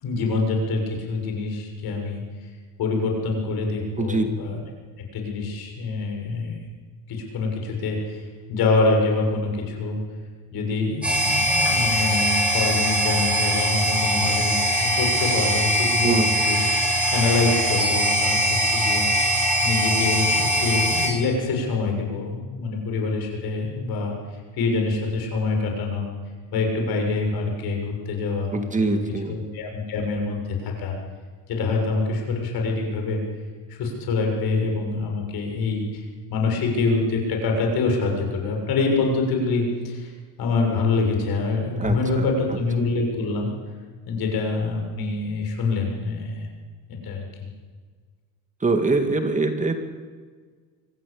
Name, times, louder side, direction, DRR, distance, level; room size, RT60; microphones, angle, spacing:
voice 1, 0.0-2.2 2.8-4.6 5.1-6.6 7.1-10.0 10.5-16.6 17.1-19.3 19.6-24.1 24.5-26.1 26.5-29.0 29.3-31.0 31.5-33.2 33.7-40.1 40.4-43.5 44.1-46.5 46.9-47.5, left 3 dB, 65° left, 2 dB, 6.9 m, -25 dB
voice 2, 4.0-4.6 16.0-16.3 28.5-29.4 41.8-42.6 48.6-49.8, right 3 dB, 20° right, 6 dB, 2.0 m, -24 dB
sound 1, 11.0-21.1, equal, 5° right, 6.2 m, -22 dB
25.0 x 15.0 x 8.7 m, 1.5 s
cardioid pair, 125°, 40 cm